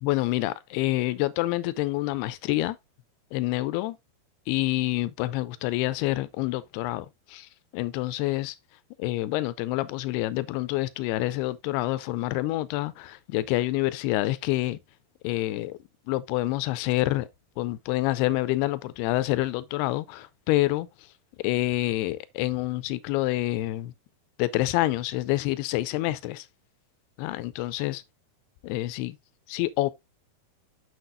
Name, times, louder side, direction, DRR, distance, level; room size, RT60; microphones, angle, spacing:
voice 1, 0.0-2.8 3.3-4.0 4.5-8.6 9.0-14.8 15.2-15.8 16.1-17.3 17.6-20.9 21.4-23.9 24.4-26.5 27.2-28.0 28.6-29.2 29.5-29.9, left 17 dB, 85° left, 2.6 m, -27 dB
7.8 x 6.5 x 2.6 m
omnidirectional pair, 4.7 m